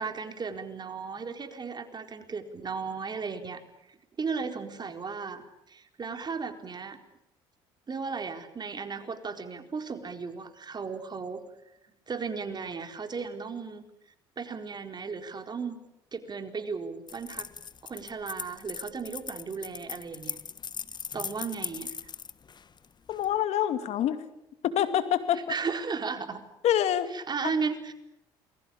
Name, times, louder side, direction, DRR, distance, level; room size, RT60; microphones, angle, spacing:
voice 1, 0.0-3.6 3.9-7.0 7.9-11.4 12.1-13.8 14.4-15.8 16.1-17.5 17.8-20.4 21.1-22.0 25.5-26.4 27.1-27.9, right 5 dB, 35° right, 7 dB, 4.2 m, -35 dB
sound 1, 17.1-23.3, left 6 dB, 35° left, 1.3 m, -39 dB
voice 2, 23.1-24.2 24.6-25.4 26.6-27.1 27.4-27.5, left 10 dB, 65° left, 10 dB, 2.4 m, -26 dB
28.5 x 22.0 x 8.8 m, 0.84 s
hypercardioid pair, 65°, 12 cm